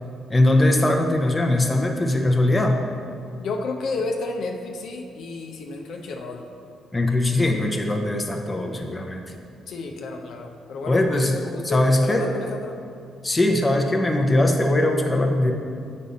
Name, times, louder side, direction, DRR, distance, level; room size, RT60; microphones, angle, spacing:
voice 1, 0.3-2.8 6.9-9.2 10.9-11.4 11.6-12.3 13.2-15.5, left 1 dB, 20° left, 2 dB, 0.7 m, -20 dB
voice 2, 3.4-6.5 9.7-12.8, left 3 dB, 70° left, 2 dB, 0.7 m, -31 dB
8.0 x 5.3 x 4.1 m, 2.5 s
cardioid pair, 90°, 0 cm